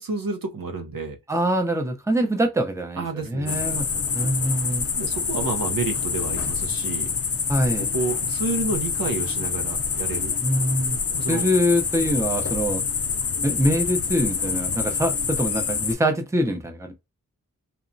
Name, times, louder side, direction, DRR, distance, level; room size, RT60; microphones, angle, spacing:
voice 1, 0.0-1.2 3.0-3.8 5.0-7.1 7.9-10.3 11.1-11.4, right 3 dB, 80° right, 0.7 m, -30 dB
voice 2, 1.3-4.9 7.5-7.9 10.4-11.0 11.3-12.8 13.4-16.9, equal, 10° right, 0.6 m, -24 dB
sound 1, 3.5-15.9, left 6 dB, 45° left, 0.4 m, -26 dB
2.9 x 2.1 x 2.5 m
wide cardioid pair, 55°, 34 cm